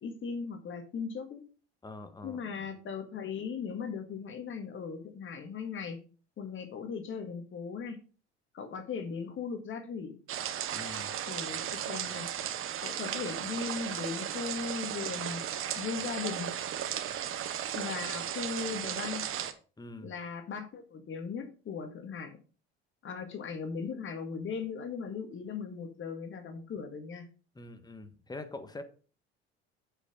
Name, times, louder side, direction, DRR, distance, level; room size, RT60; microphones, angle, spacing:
voice 1, 0.0-1.4 2.2-6.0 6.4-8.0 8.5-10.2 11.3-12.3 12.8-15.5 15.8-16.5 17.7-19.3 20.0-22.4 23.0-27.3, left 5 dB, 40° left, 6 dB, 1.9 m, -38 dB
voice 2, 1.8-2.7 10.7-11.1 19.8-20.1 27.5-28.8, left 2 dB, 10° left, 8 dB, 1.6 m, -44 dB
sound 1, 10.3-19.5, right 10 dB, 40° right, 1.1 m, -35 dB
8.1 x 5.8 x 5.5 m, 0.37 s
figure-of-eight pair, 70°, 32 cm